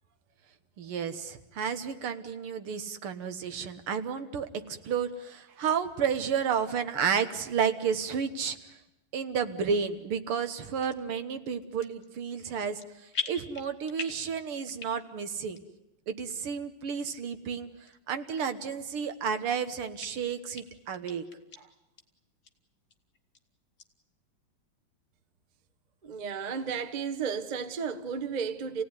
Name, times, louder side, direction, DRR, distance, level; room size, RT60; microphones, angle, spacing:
voice 1, 0.8-8.6 9.1-12.8 13.3-15.6 16.1-17.7 18.1-21.2, right 7 dB, 80° right, 2.1 m, -31 dB
sound 1, 10.8-11.0 11.6-12.1 12.4-12.9 13.1-14.3 14.7-15.2 15.6-15.7 16.3-16.4 17.0-17.1 17.8-18.0 18.3-18.4 18.9-19.6 20.0-20.1 20.6-20.7 20.9-21.6 22.0-22.1 22.4-22.5 22.9-23.4 23.8-23.9, left 5 dB, 40° left, 1.7 m, -39 dB
voice 2, 26.0-28.8, right 6 dB, 35° right, 0.7 m, -33 dB
28.0 x 17.0 x 9.7 m
omnidirectional pair, 2.4 m